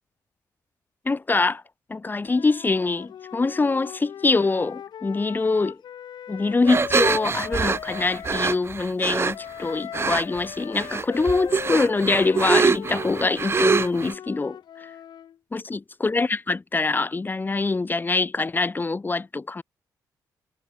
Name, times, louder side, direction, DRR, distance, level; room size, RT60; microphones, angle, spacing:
voice 1, 1.0-1.6 1.9-5.8 6.3-14.9 15.5-19.6, left 3 dB, 25° left, 1.5 m, -24 dB
Wind instrument woodwind instrument, 2.2-8.6 9.3-15.4, left 9 dB, 75° left, 7.1 m, -39 dB
sound 1, 6.7-9.3 9.9-10.4 10.7-14.1, right 5 dB, 35° right, 0.7 m, -24 dB
cardioid pair, 90°, 7 cm